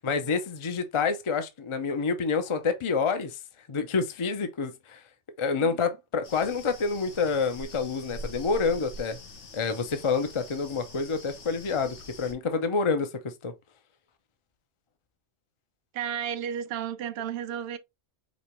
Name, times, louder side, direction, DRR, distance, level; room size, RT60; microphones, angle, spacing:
voice 1, 0.0-3.4 3.7-5.0 5.4-9.2 9.5-13.5, left 5 dB, 35° left, 0.6 m, -28 dB
sound 1, 6.2-12.3, left 1 dB, 85° left, 1.4 m, -44 dB
voice 2, 15.9-17.8, right 9 dB, 65° right, 0.7 m, -32 dB
5.2 x 2.9 x 3.0 m
omnidirectional pair, 1.2 m